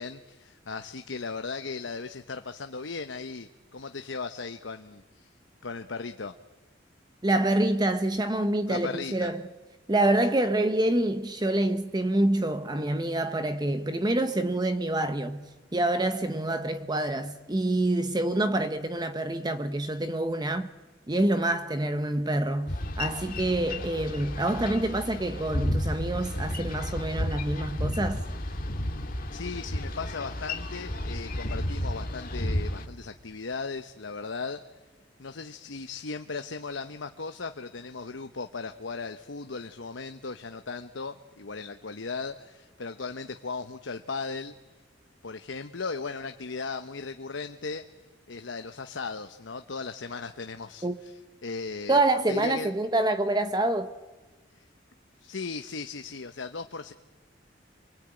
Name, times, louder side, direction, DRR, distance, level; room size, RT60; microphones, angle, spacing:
voice 1, 0.0-5.3 5.6-6.3 8.7-9.3 29.3-34.7 35.2-44.6 45.2-47.8 48.3-52.0 52.3-52.7 55.2-56.9, left 4 dB, 85° left, 0.9 m, -37 dB
voice 2, 7.2-9.4 9.9-15.4 15.7-20.7 21.1-28.2 50.8-50.9 51.9-53.9, right 1 dB, 20° right, 0.8 m, -26 dB
Boat Water vehicle, 22.7-32.9, left 1 dB, 50° left, 2.1 m, -32 dB
27.5 x 23.5 x 8.9 m
head